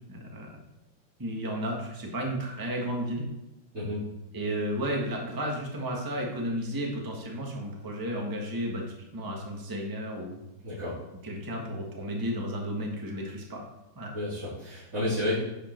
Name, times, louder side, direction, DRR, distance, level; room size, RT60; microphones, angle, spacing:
voice 1, 0.1-0.5 1.2-3.2 4.3-8.8 9.1-10.4 11.2-13.6 13.9-14.1, equal, 10° right, -1 dB, 1.3 m, -33 dB
voice 2, 3.7-4.0 10.6-11.0 14.1-15.4, left 1 dB, 40° right, -13 dB, 4.2 m, -31 dB
10.5 x 5.1 x 4.5 m, 0.96 s
omnidirectional pair, 2.1 m